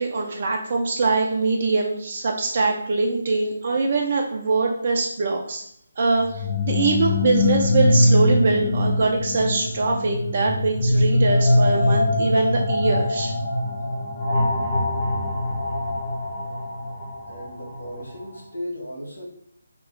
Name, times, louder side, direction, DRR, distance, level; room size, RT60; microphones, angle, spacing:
voice 1, 0.0-5.6 6.0-13.3, right 3 dB, 45° right, 1 dB, 0.4 m, -23 dB
sound 1, 6.2-18.0, left 1 dB, 20° left, 1.1 m, -22 dB
voice 2, 17.3-19.2, equal, 70° left, -1 dB, 1.1 m, -35 dB
3.0 x 2.9 x 3.8 m, 0.70 s
figure-of-eight pair, 150°, 0 cm